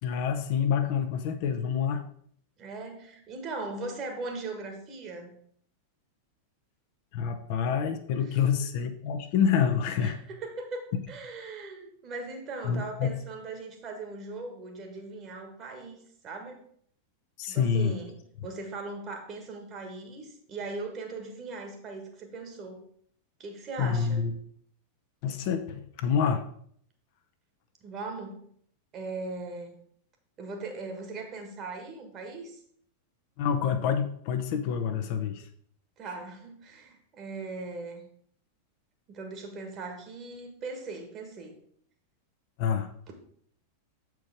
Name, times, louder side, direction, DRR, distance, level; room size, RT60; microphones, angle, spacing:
voice 1, 0.0-2.0 7.1-10.2 12.6-13.1 17.4-17.9 23.8-24.3 25.2-26.4 33.4-35.5 42.6-42.9, left 7 dB, 45° left, 7 dB, 0.7 m, -27 dB
voice 2, 2.6-5.4 8.2-8.4 9.0-9.1 10.0-10.1 10.4-16.6 17.4-22.9 23.4-24.3 27.8-28.4 28.9-29.7 30.4-32.6 36.0-38.1 39.1-41.6, right 3 dB, 30° right, 3 dB, 1.6 m, -39 dB
7.5 x 4.6 x 4.9 m, 0.62 s
figure-of-eight pair, 90°, 0 cm